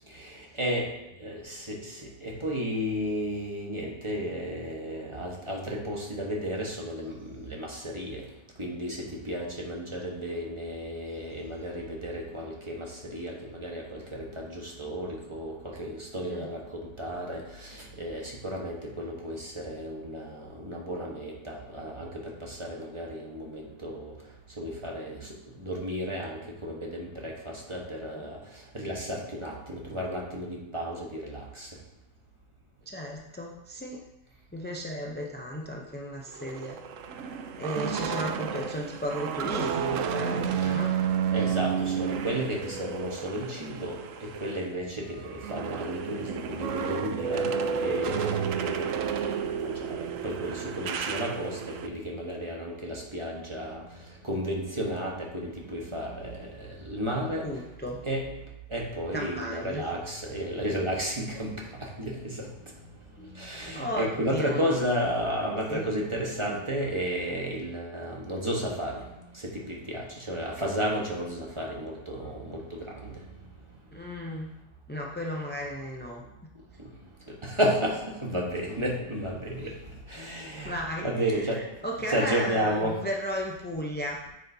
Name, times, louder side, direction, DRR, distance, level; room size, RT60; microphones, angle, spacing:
voice 1, 0.1-0.9 1.2-8.2 8.6-24.1 24.6-28.4 28.7-31.7 40.6-40.8 41.3-47.5 47.8-53.8 54.2-57.5 58.0-58.3 58.7-61.5 61.8-62.5 63.3-69.1 69.3-73.1 77.3-79.7 80.1-81.6 82.1-83.0, equal, 25° right, -2 dB, 1.2 m, -33 dB
voice 2, 32.9-34.0 34.5-36.8 37.6-40.9 57.4-58.0 59.1-59.8 63.2-63.3 63.7-64.8 65.7-65.8 73.9-74.5 74.9-76.2 79.6-79.7 80.6-81.1 81.8-84.2, equal, 15° left, -1 dB, 0.4 m, -34 dB
sound 1, 36.3-44.7 45.0-51.9, right 7 dB, 75° right, 1.0 m, -31 dB
9.3 x 6.5 x 2.7 m, 0.93 s
omnidirectional pair, 1.4 m